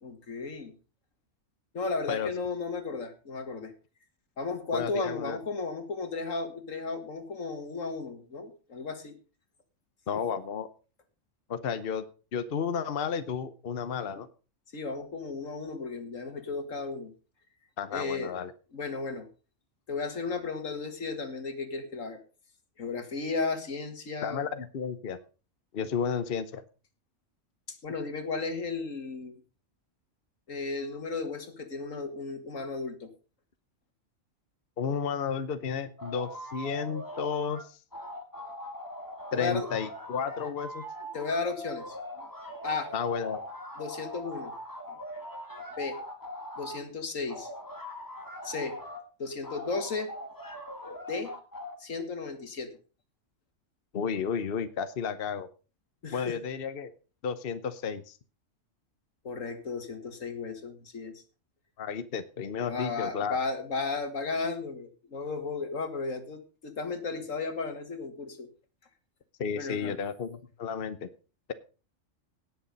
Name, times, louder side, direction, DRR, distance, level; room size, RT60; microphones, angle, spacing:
voice 1, 0.0-0.7 1.7-3.7 4.4-9.2 14.7-17.1 17.9-18.4 18.7-19.3 19.9-22.2 22.8-24.5 27.8-29.4 30.5-33.1 39.3-39.7 41.1-42.0 42.6-42.9 43.8-44.5 45.8-46.0 46.6-47.5 48.4-48.8 49.2-50.1 51.1-51.3 51.8-52.7 56.0-56.4 59.2-61.2 62.6-68.5 69.6-70.0, left 4 dB, 85° left, 8 dB, 2.2 m, -34 dB
voice 2, 4.7-5.4 10.1-10.7 11.5-12.0 12.3-14.3 17.8-18.5 24.2-25.2 25.7-26.6 34.8-37.8 39.3-40.8 42.9-43.4 53.9-55.5 56.1-56.9 57.2-58.2 61.8-63.4 69.4-71.1, left 6 dB, 50° left, 12 dB, 1.0 m, -32 dB
sound 1, 36.0-37.6 37.9-46.8 47.3-49.0 49.4-51.7, left 1 dB, 15° left, 2.0 m, -41 dB
17.5 x 6.8 x 5.3 m, 0.35 s
omnidirectional pair, 1.3 m